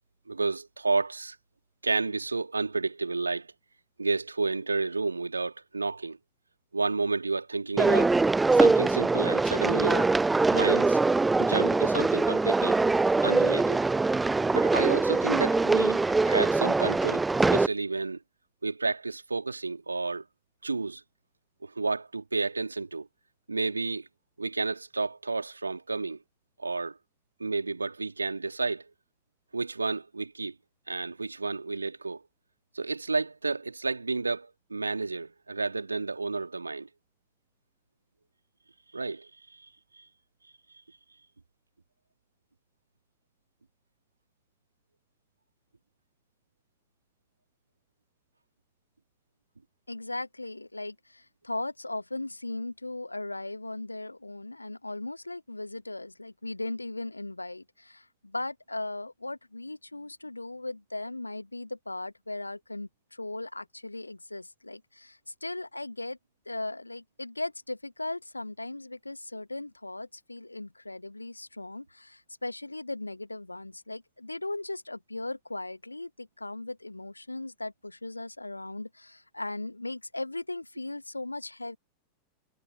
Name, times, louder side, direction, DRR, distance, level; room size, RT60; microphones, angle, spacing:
voice 1, 0.3-1.4 1.8-3.5 4.0-6.2 6.7-8.2 8.5-10.1 10.5-11.0 11.4-12.8 13.2-13.8 14.5-17.2 17.5-18.2 18.6-20.2 20.6-21.0 21.6-23.1 23.5-24.1 24.4-26.2 26.6-26.9 27.4-28.9 29.5-30.5 30.9-32.2 32.7-36.9 38.9-39.3, right 3 dB, 80° right, 3.3 m, -31 dB
sound 1, 7.8-17.7, right 3 dB, 10° right, 0.4 m, -23 dB
voice 2, 49.9-66.2 66.4-81.8, left 2 dB, 85° left, 1.6 m, -38 dB
figure-of-eight pair, 90°, 0 cm